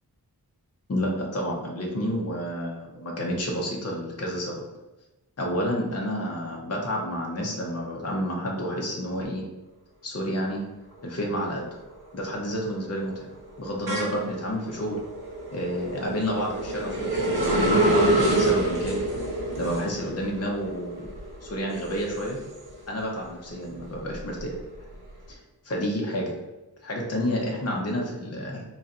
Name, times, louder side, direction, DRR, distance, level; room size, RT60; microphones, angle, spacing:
voice 1, 0.9-4.5 5.4-9.4 10.0-10.6 11.0-11.7 12.1-13.3 13.6-15.0 15.5-19.0 19.6-21.0 21.4-22.4 22.9-24.6 25.3-25.4 25.6-26.3 26.8-28.6, equal, 40° left, -1 dB, 0.8 m, -29 dB
sound 1, 10.9-11.4 11.7-23.0 23.4-25.1, right 1 dB, 70° right, 1.1 m, -28 dB
3.1 x 2.5 x 4.2 m, 1.0 s
wide cardioid pair, 80°, 39 cm